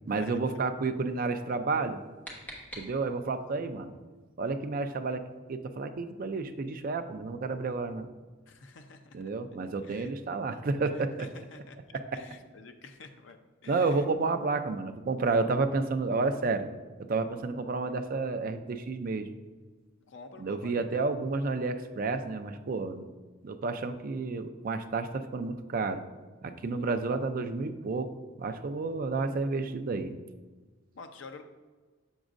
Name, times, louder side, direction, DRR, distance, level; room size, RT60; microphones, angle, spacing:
voice 1, 0.1-2.0 2.8-3.9 4.4-5.2 5.5-8.1 9.1-11.3 11.9-12.2 13.7-16.7 17.0-19.3 20.4-23.1 23.4-26.0 26.4-28.1 28.4-30.1, right 3 dB, 45° right, 8 dB, 0.4 m, -31 dB
sound 1, 1.7-3.4, equal, 10° left, 1.0 m, -46 dB
voice 2, 8.5-9.3 9.8-10.1 10.9-11.8 12.1-14.1 20.1-21.1 26.6-26.9 30.9-31.4, left 4 dB, 65° left, 6 dB, 0.5 m, -49 dB
7.0 x 6.2 x 2.5 m, 1.3 s
head